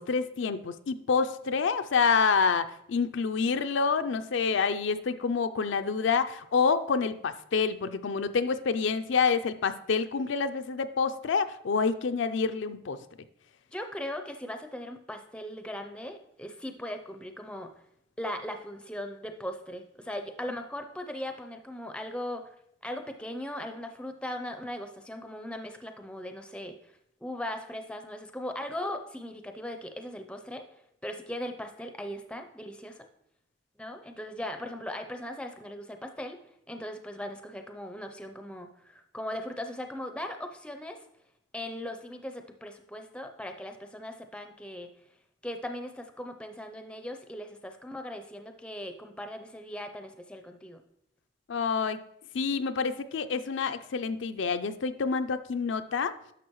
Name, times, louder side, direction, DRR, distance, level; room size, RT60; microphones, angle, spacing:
voice 1, 0.0-13.0 51.5-52.0 52.3-56.1, left 5 dB, 70° left, 9 dB, 0.4 m, -27 dB
voice 2, 13.7-17.7 18.2-22.6 22.8-26.9 27.2-30.6 31.0-33.1 33.8-36.4 36.7-41.0 41.5-44.9 45.4-50.8, left 1 dB, 5° left, 6 dB, 0.5 m, -39 dB
11.0 x 6.3 x 3.0 m, 0.74 s
head